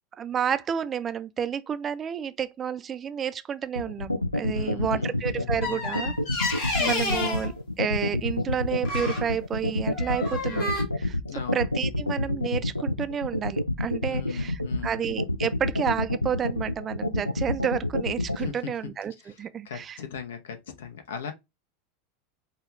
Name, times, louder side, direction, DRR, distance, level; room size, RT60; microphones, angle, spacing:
voice 1, 0.2-11.2 11.5-19.1 19.4-20.0, right 8 dB, 25° right, 0.3 m, -30 dB
sound 1, 3.8-18.5, left 1 dB, 90° left, 0.3 m, -27 dB
voice 2, 4.5-5.9 11.3-11.7 14.0-15.0 18.4-18.8 19.2-21.3, left 7 dB, 65° left, 0.8 m, -39 dB
sound 2, 5.6-7.5 8.8-9.3 9.9-10.8, left 2 dB, 50° left, 1.7 m, -30 dB
5.4 x 2.3 x 3.0 m
figure-of-eight pair, 85°, 0 cm